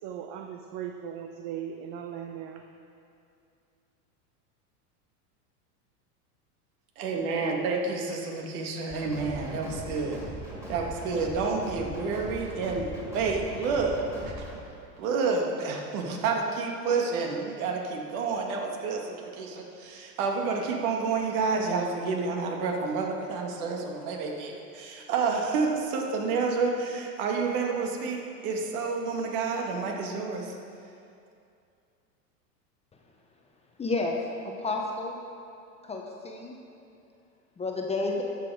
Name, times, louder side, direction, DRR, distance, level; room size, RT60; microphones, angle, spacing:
voice 1, 0.0-2.7, right 9 dB, 45° right, 5 dB, 0.7 m, -38 dB
voice 2, 7.0-10.2 10.7-14.5 15.0-30.6, right 4 dB, 65° right, 1 dB, 1.9 m, -29 dB
sound 1, 8.9-14.6, equal, 5° right, 2.5 m, -40 dB
voice 3, 33.8-34.1 34.4-35.2 35.8-36.6 37.6-38.2, left 3 dB, 15° left, 1 dB, 0.9 m, -30 dB
13.0 x 6.8 x 4.8 m, 2.5 s
supercardioid pair, 125°, 47 cm